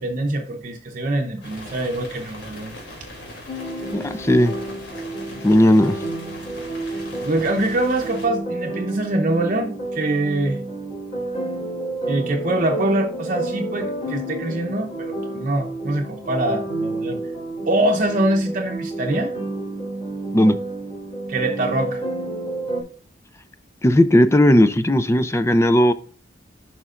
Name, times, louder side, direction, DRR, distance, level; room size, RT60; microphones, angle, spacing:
voice 1, 0.0-2.7 6.9-10.6 12.1-17.2 17.7-19.3 21.3-22.0, right 1 dB, 45° right, 0.8 m, -24 dB
sound 1, 1.4-8.3, left 1 dB, 90° left, 2.9 m, -40 dB
sound 2, 3.5-22.8, right 2 dB, 40° left, 3.5 m, -30 dB
voice 2, 3.9-4.5 5.4-6.0 20.3-20.6 23.8-25.9, left 1 dB, 15° left, 0.4 m, -16 dB
11.0 x 5.7 x 2.5 m
head